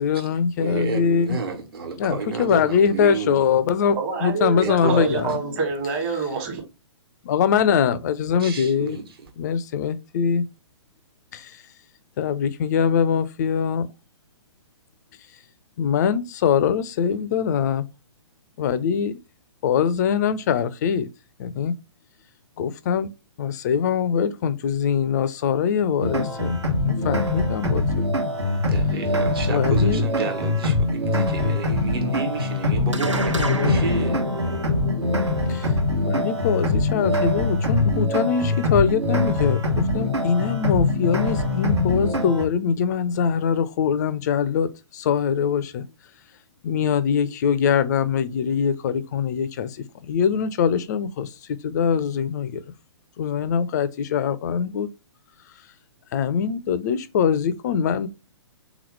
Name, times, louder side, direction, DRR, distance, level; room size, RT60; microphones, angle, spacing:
voice 1, 0.0-1.4 2.0-5.6 7.2-9.0 9.4-10.4 11.3-11.6 12.2-13.9 15.8-17.9 18.6-19.2 19.6-21.1 21.4-21.7 22.6-23.1 23.4-28.0 29.5-30.0 33.3-33.9 35.5-35.7 36.0-45.8 46.6-52.6 53.2-54.9 56.1-58.1, left 7 dB, 35° left, 0.3 m, -23 dB
voice 2, 0.6-3.4 4.6-5.1 8.4-9.3 28.7-34.2, right 5 dB, 55° right, 1.3 m, -31 dB
voice 3, 3.9-6.6, right 4 dB, 30° right, 1.3 m, -26 dB
sound 1, 26.0-42.4, left 2 dB, 70° right, 1.2 m, -23 dB
sound 2, 32.9-37.6, right 1 dB, 90° right, 0.6 m, -31 dB
3.6 x 3.0 x 3.0 m
figure-of-eight pair, 120°, 15 cm